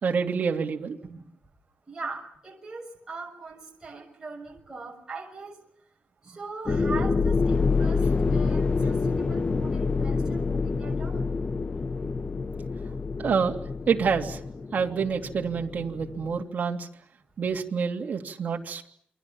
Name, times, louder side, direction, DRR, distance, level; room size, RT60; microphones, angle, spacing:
voice 1, 0.0-1.0 13.2-13.5 13.9-14.4 14.7-16.9 17.4-18.9, right 6 dB, 50° right, 2 dB, 2.8 m, -27 dB
voice 2, 1.9-5.6 6.2-8.0 8.3-11.3, right 3 dB, 15° right, -1 dB, 6.2 m, -40 dB
sound 1, 6.7-16.4, left 4 dB, 30° left, 1.0 m, -27 dB
28.5 x 23.5 x 7.2 m, 0.69 s
wide cardioid pair, 135°, 4 cm